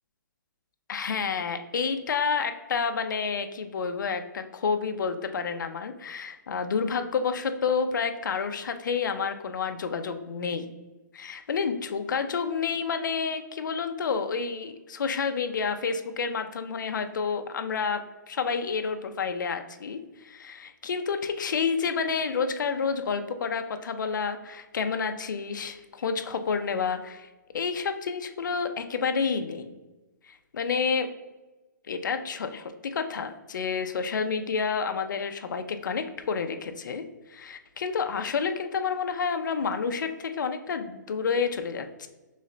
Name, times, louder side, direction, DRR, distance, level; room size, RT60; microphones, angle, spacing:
voice 1, 0.9-10.7 11.1-27.3 27.5-29.7 30.3-31.1 31.9-42.1, left 5 dB, 70° left, 8 dB, 0.5 m, -29 dB
3.2 x 3.1 x 3.8 m, 1.1 s
hypercardioid pair, 175°, 11 cm